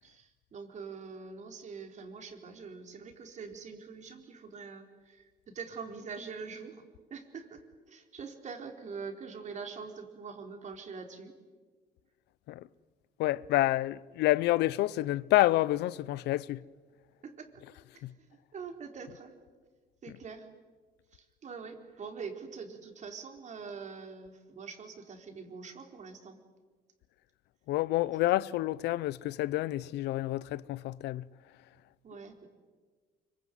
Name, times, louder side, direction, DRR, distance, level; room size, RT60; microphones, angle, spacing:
voice 1, 0.0-6.8 7.1-11.4 17.2-17.5 17.9-19.4 20.0-20.5 21.1-26.4 32.0-32.5, right 5 dB, 45° right, 4.2 m, -44 dB
voice 2, 13.2-16.6 18.0-18.1 27.7-31.2, left 16 dB, 80° left, 0.7 m, -28 dB
25.5 x 24.0 x 9.4 m
cardioid pair, 110°, 17 cm